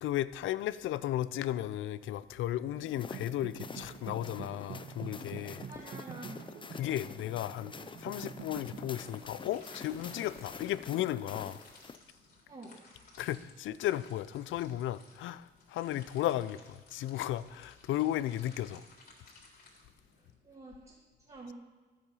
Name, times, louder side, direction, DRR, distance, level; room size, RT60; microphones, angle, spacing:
voice 1, 0.0-5.6 6.8-7.7 8.0-11.6 13.2-18.8, left 13 dB, 80° left, 0.5 m, -34 dB
sound 1, 2.7-10.3, right 7 dB, 55° right, 0.7 m, -48 dB
sound 2, 2.9-12.0, left 4 dB, 25° left, 0.6 m, -47 dB
voice 2, 5.7-6.6 12.5-12.8 20.1-21.5, right 2 dB, 30° right, 2.4 m, -49 dB
sound 3, 9.0-20.4, left 3 dB, 50° left, 3.8 m, -58 dB
11.0 x 8.7 x 5.5 m
cardioid pair, 90°, 20 cm